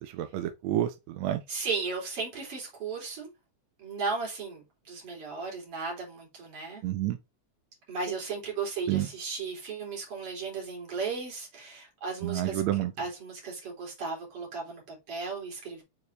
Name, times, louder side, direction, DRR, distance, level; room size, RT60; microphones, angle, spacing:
voice 1, 0.0-1.4 6.8-7.2 8.9-9.1 12.2-12.9, right 13 dB, 75° right, 1.7 m, -29 dB
voice 2, 1.5-3.3 3.8-6.8 7.9-12.6 13.0-15.8, right 4 dB, 45° right, 4.2 m, -35 dB
6.8 x 4.7 x 3.3 m
omnidirectional pair, 3.5 m